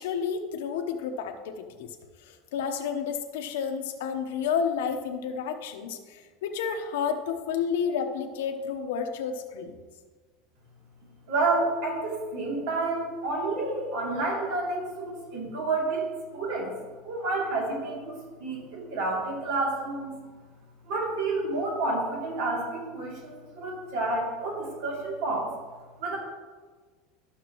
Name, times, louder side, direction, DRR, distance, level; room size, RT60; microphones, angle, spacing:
voice 1, 0.0-1.9 2.3-9.8, left 7 dB, 90° left, 6 dB, 1.0 m, -31 dB
voice 2, 11.3-16.1 16.3-16.7 17.0-20.1 20.9-22.7 22.9-25.5 26.0-26.2, right 2 dB, 65° right, -2 dB, 2.8 m, -29 dB
12.5 x 6.6 x 3.1 m, 1.4 s
supercardioid pair, 160°, 0 cm